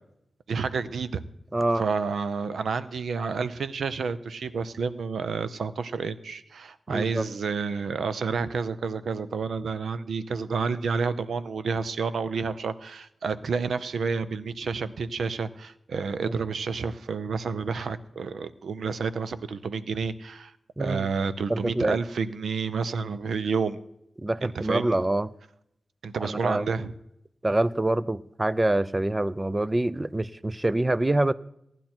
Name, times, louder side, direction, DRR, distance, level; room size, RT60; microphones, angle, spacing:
voice 1, 0.5-1.2 1.8-20.5 20.8-23.8 24.4-25.0 26.0-26.9, right 5 dB, 90° right, 13 dB, 0.7 m, -30 dB
voice 2, 1.5-1.8 6.9-7.2 16.2-16.3 20.8-21.1 21.5-22.0 24.2-25.3 26.2-26.7 27.4-31.3, right 1 dB, 20° right, 17 dB, 0.4 m, -25 dB
17.5 x 10.5 x 4.4 m, 0.78 s
wide cardioid pair, 90°, 0 cm